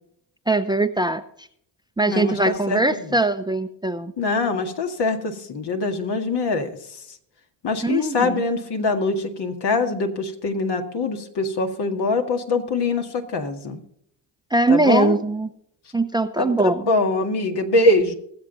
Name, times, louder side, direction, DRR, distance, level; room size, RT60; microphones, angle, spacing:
voice 1, 0.5-1.2 2.0-4.1 7.8-8.4 14.5-15.5 15.9-16.8, right 2 dB, 10° right, 12 dB, 0.6 m, -21 dB
voice 2, 2.1-3.2 4.2-7.2 7.6-13.8 14.7-15.2 16.4-18.2, left 3 dB, 60° left, 5 dB, 2.0 m, -23 dB
20.0 x 7.5 x 4.0 m, 0.68 s
supercardioid pair, 70°, 45 cm